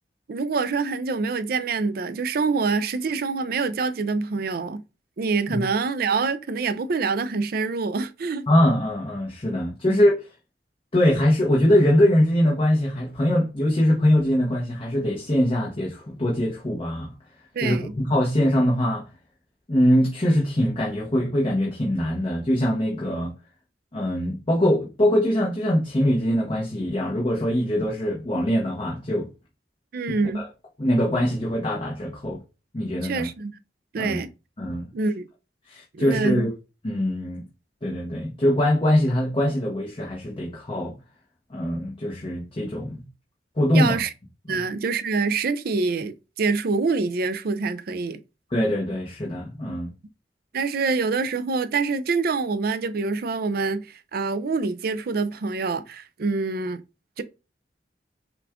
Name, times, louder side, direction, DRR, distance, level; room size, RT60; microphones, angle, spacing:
voice 1, 0.3-4.8 5.2-8.5 9.8-10.0 17.5-17.9 29.9-30.5 33.0-33.6 33.9-34.3 34.9-35.3 35.9-36.5 43.7-44.1 44.5-48.2 50.5-56.8 57.2-57.3, right 4 dB, 60° right, 0.4 m, -25 dB
voice 2, 8.5-10.2 10.9-17.1 17.6-19.1 19.7-23.3 23.9-29.3 30.3-30.4 30.8-32.4 32.7-33.3 34.0-34.2 34.6-34.9 35.7-36.5 36.8-37.4 37.8-41.0 41.5-43.0 43.6-44.0 44.5-44.6 48.5-49.9, left 1 dB, 30° left, 1.0 m, -22 dB
5.8 x 2.4 x 3.5 m
head